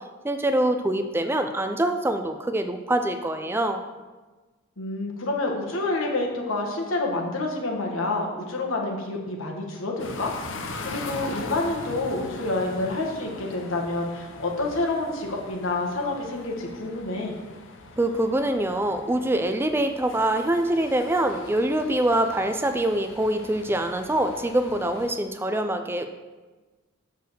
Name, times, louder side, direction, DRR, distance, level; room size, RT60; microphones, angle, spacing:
voice 1, 0.2-3.8 18.0-26.1, right 1 dB, 10° right, 7 dB, 0.3 m, -24 dB
voice 2, 4.8-17.3, left 2 dB, 80° left, 0 dB, 1.4 m, -28 dB
sound 1, 10.0-25.1, left 3 dB, 65° left, 0.7 m, -41 dB
6.9 x 4.5 x 6.3 m, 1.3 s
head